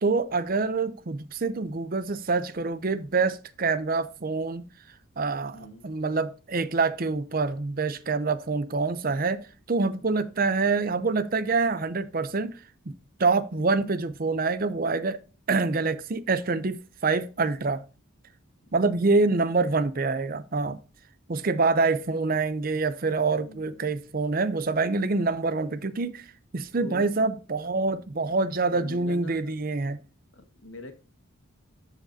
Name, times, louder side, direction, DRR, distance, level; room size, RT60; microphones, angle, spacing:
voice 1, 0.0-4.6 5.2-12.6 12.9-13.0 13.2-15.2 15.5-17.8 18.7-20.8 21.3-26.3 26.5-30.0, right 3 dB, 40° right, 0.6 m, -26 dB
voice 2, 5.5-5.8 9.9-10.1 19.1-19.3 23.3-23.8 26.8-27.1 28.7-29.6 30.3-30.9, left 2 dB, 60° left, 1.7 m, -44 dB
13.5 x 4.9 x 2.7 m
head